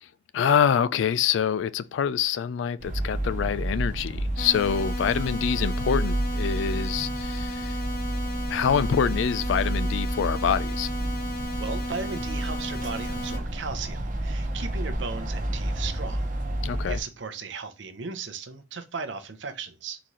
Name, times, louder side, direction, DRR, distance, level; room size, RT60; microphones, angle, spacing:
voice 1, 0.3-7.8 8.5-10.9 16.6-17.0, left 8 dB, 90° left, 0.3 m, -26 dB
sound 1, 2.8-17.0, right 1 dB, 45° right, 0.9 m, -30 dB
sound 2, 4.4-13.4, equal, 50° left, 1.7 m, -34 dB
voice 2, 11.6-16.2 16.7-20.0, right 5 dB, 85° right, 0.7 m, -36 dB
4.1 x 3.8 x 3.1 m
head